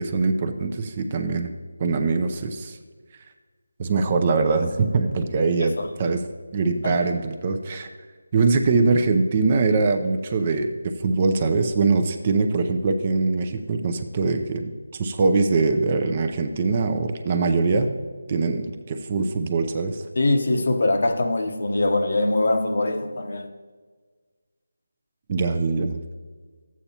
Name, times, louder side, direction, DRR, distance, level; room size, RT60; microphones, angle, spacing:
voice 1, 0.0-1.5 1.8-2.8 3.8-6.2 6.5-7.9 8.3-17.9 18.3-20.1 25.3-26.0, right 4 dB, 25° right, 0.5 m, -22 dB
voice 2, 20.2-23.5, left 2 dB, 55° left, 0.9 m, -23 dB
12.5 x 8.4 x 2.8 m
figure-of-eight pair, 170°, 0 cm